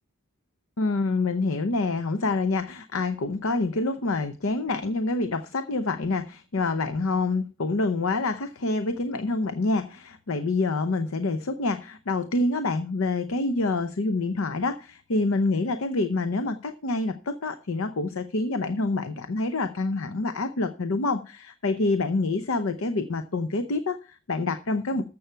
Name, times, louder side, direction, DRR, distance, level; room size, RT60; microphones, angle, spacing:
voice 1, 0.8-25.1, left 3 dB, 70° left, 11 dB, 0.7 m, -27 dB
13.5 x 7.0 x 4.5 m, 0.33 s
head